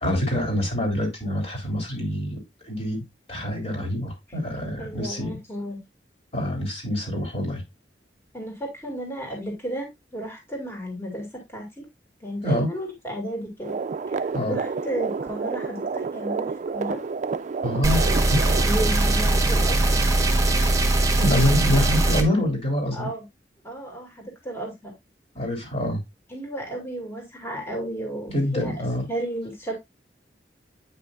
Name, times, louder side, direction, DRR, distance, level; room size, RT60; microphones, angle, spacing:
voice 1, 0.0-2.4 2.7-3.0 3.3-5.3 6.3-7.6 12.4-12.7 14.3-14.6 17.6-18.0 18.3-18.4 21.2-23.1 25.3-26.0 28.3-29.0, left 1 dB, 35° left, 1 dB, 3.3 m, -25 dB
voice 2, 4.8-5.8 8.3-11.9 12.2-13.8 14.1-17.0 18.6-20.0 22.9-23.3 23.6-24.9 26.3-29.7, right 1 dB, 15° left, 0 dB, 2.4 m, -33 dB
sound 1, 13.6-18.7, right 4 dB, 45° right, 0.4 m, -30 dB
sound 2, 17.8-22.2, right 2 dB, 20° right, 1.2 m, -20 dB
9.0 x 5.5 x 2.4 m, 0.19 s
head